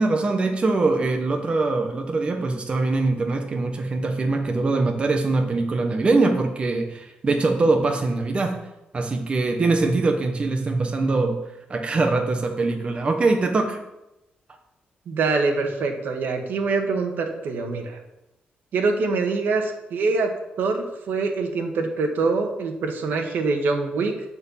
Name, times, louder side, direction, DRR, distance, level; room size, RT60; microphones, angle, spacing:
voice 1, 0.0-8.6 8.9-11.4 11.7-13.8, right 3 dB, 35° right, 4 dB, 1.1 m, -22 dB
voice 2, 15.1-18.0 18.7-20.3 20.6-24.1, right 3 dB, 80° right, 4 dB, 1.6 m, -24 dB
11.0 x 4.6 x 7.2 m, 0.92 s
cardioid pair, 120°, 3 cm